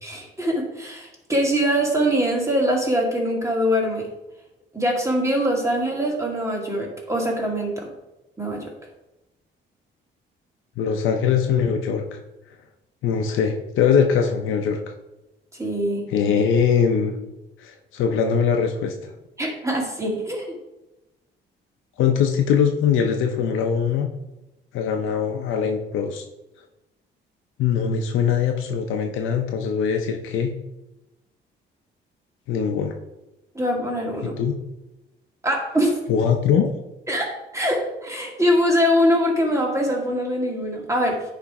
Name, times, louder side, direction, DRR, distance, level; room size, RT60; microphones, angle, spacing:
voice 1, 0.0-4.0 4.7-7.9 8.4-8.6 15.6-16.1 19.4-20.6 33.5-34.3 35.4-36.0 37.1-41.3, equal, 15° right, -1 dB, 2.2 m, -23 dB
voice 2, 10.8-12.2 13.0-14.8 16.1-17.1 17.6-18.9 22.0-24.1 24.7-26.2 27.6-30.5 32.5-33.0 34.2-34.5 36.1-36.7, left 7 dB, 85° left, 4 dB, 0.7 m, -21 dB
9.9 x 3.5 x 4.8 m, 0.99 s
cardioid pair, 90°, 20 cm